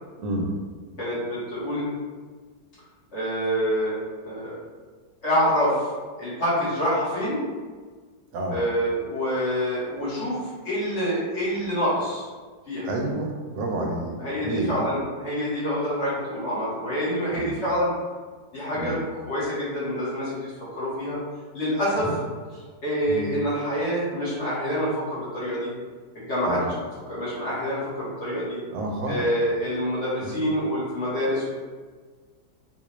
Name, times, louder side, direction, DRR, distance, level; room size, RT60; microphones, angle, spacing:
voice 1, 0.2-0.5 8.3-8.6 12.8-14.2 14.4-14.8 17.3-17.5 18.8-19.0 22.0-22.1 23.1-23.3 26.4-26.7 28.7-29.3 30.2-30.4, right 1 dB, 85° right, 0 dB, 1.3 m, -29 dB
voice 2, 1.0-1.8 3.1-4.0 4.2-4.5 5.2-5.9 6.2-7.4 8.5-12.3 12.7-12.9 14.2-17.9 18.5-19.0 19.3-21.2 21.5-22.1 22.8-25.7 26.1-26.6 27.1-28.6 29.1-31.5, equal, 45° left, -9 dB, 1.4 m, -26 dB
4.0 x 2.4 x 3.0 m, 1.5 s
omnidirectional pair, 1.9 m